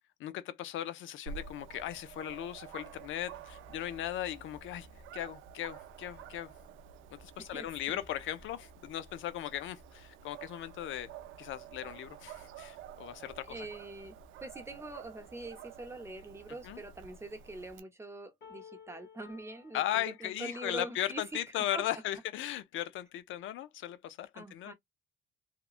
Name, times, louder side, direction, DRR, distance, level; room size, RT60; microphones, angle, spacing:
voice 1, 0.2-4.9 5.1-6.5 7.1-11.1 11.4-13.7 16.6-16.8 19.7-24.7, left 12 dB, 75° left, 0.5 m, -37 dB
Dog, 1.3-17.8, right 7 dB, 80° right, 0.5 m, -50 dB
voice 2, 7.4-8.0 13.5-21.8 24.3-24.7, right 2 dB, 15° right, 0.8 m, -44 dB
sound 1, 18.4-21.4, left 7 dB, 55° left, 1.3 m, -55 dB
3.0 x 2.1 x 2.4 m
cardioid pair, 90°, 20 cm